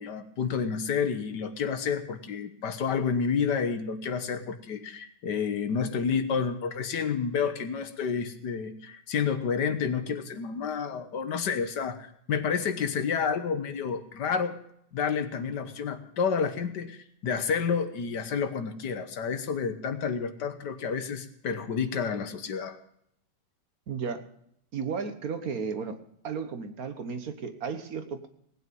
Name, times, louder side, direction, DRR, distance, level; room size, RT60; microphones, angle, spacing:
voice 1, 0.0-14.5 14.9-22.8, left 6 dB, 70° left, 9 dB, 1.7 m, -30 dB
voice 2, 23.9-24.3 24.7-26.0 26.2-28.3, right 6 dB, 55° right, 8 dB, 1.5 m, -34 dB
19.0 x 9.3 x 5.3 m, 0.71 s
omnidirectional pair, 1.9 m